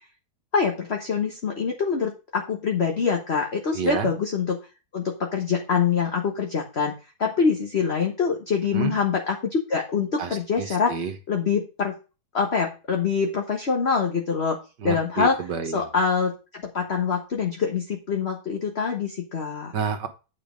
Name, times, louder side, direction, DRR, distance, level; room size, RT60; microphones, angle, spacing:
voice 1, 0.5-4.6 4.9-6.9 7.2-10.9 11.3-12.0 12.3-14.6 14.8-15.3 15.7-19.7, left 5 dB, 40° left, 2 dB, 1.5 m, -25 dB
voice 2, 3.7-4.1 8.7-9.0 10.2-11.1 14.8-15.9 19.7-20.1, right 6 dB, 75° right, 8 dB, 2.0 m, -29 dB
9.5 x 5.2 x 5.1 m, 0.31 s
omnidirectional pair, 1.9 m